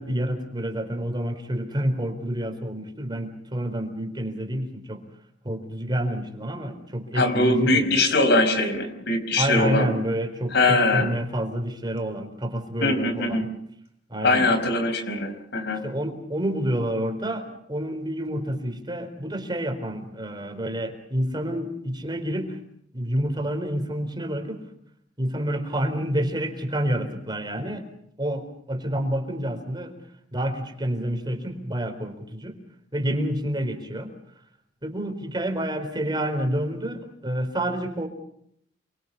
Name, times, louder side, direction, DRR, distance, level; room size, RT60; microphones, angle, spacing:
voice 1, 0.0-5.0 5.4-7.9 9.4-13.5 14.1-14.6 15.8-22.6 22.9-24.6 25.2-27.9 28.2-29.9 30.3-32.6 32.9-34.1 34.8-38.1, right 1 dB, 25° right, 6 dB, 4.2 m, -28 dB
voice 2, 7.1-9.9 10.5-11.1 12.8-13.4 14.2-15.8, left 2 dB, 65° left, 8 dB, 5.1 m, -22 dB
28.5 x 24.5 x 5.6 m, 0.70 s
head